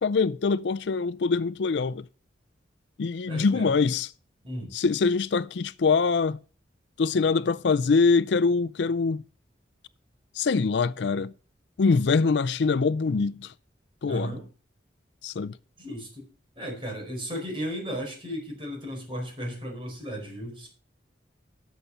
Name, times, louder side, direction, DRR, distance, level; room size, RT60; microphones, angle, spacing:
voice 1, 0.0-2.0 3.0-4.1 4.7-6.4 7.0-9.2 10.4-11.3 11.8-13.5 14.0-14.3 15.2-15.6, left 4 dB, 70° left, 0.4 m, -24 dB
voice 2, 3.3-3.7 4.4-4.7 14.0-14.5 15.8-16.3 16.6-20.7, equal, 30° right, 4.8 m, -35 dB
12.5 x 6.8 x 5.7 m
head